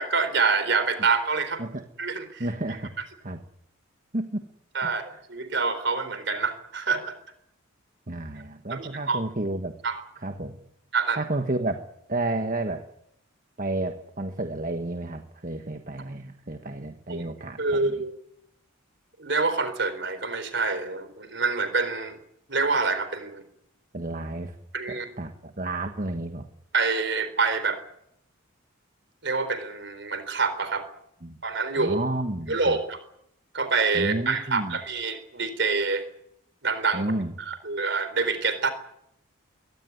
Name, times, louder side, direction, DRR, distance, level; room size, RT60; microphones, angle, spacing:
voice 1, 0.0-1.6 2.0-2.5 4.7-7.2 8.7-9.2 9.8-10.0 10.9-11.2 17.1-17.2 17.6-18.1 19.2-22.2 22.5-23.4 24.7-25.1 26.7-27.8 29.2-30.9 31.4-32.0 32.5-33.0 33.5-36.0 36.6-37.0 37.5-38.7, right 4 dB, 55° right, 11 dB, 4.1 m, -26 dB
voice 2, 2.4-2.9 3.2-3.4 4.1-4.4 4.8-4.9 8.1-9.7 10.1-10.6 11.1-12.8 13.6-18.0 23.9-24.6 24.9-26.4 31.2-31.4 31.8-32.8 33.9-34.8 36.9-37.3, right 2 dB, 40° right, 6 dB, 1.4 m, -31 dB
23.0 x 18.0 x 9.8 m, 0.76 s
head